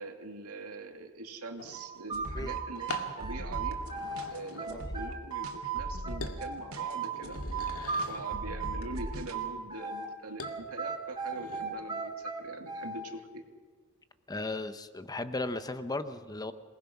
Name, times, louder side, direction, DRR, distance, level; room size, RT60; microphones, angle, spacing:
voice 1, 0.0-3.8 4.3-7.4 7.9-13.4, right 2 dB, 90° right, 4 dB, 2.4 m, -43 dB
sound 1, 1.6-1.8 2.9-3.1 3.7-5.1 5.5-5.9 6.2-6.4 6.9-8.3 10.4-10.6 11.1-11.6, left 3 dB, 75° left, 2.1 m, -44 dB
sound 2, 1.7-4.3 4.6-7.1 7.5-10.1 10.4-13.1, right 5 dB, 20° right, 3.1 m, -36 dB
sound 3, 2.1-9.4, equal, 70° right, 3.0 m, -40 dB
voice 2, 14.3-16.5, left 2 dB, 15° left, 10 dB, 0.9 m, -36 dB
27.5 x 20.0 x 6.0 m, 1.5 s
head